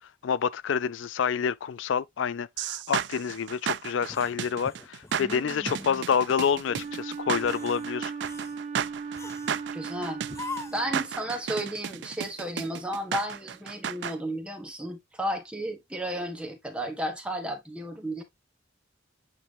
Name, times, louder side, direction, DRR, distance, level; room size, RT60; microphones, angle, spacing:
voice 1, 0.2-8.1, left 7 dB, 75° left, 0.4 m, -28 dB
sound 1, 2.6-14.1, right 8 dB, 60° right, 0.4 m, -33 dB
sound 2, 4.1-5.3 5.7-5.9 6.4-6.9 7.4-7.9 8.2-8.6 9.2-9.6 10.3-11.0, left 3 dB, 15° left, 0.5 m, -41 dB
voice 2, 5.2-6.0 9.7-10.2 10.7-18.2, right 1 dB, 5° right, 1.6 m, -33 dB
Wind instrument woodwind instrument, 6.6-11.4, right 5 dB, 35° right, 1.2 m, -38 dB
8.7 x 3.3 x 3.4 m
head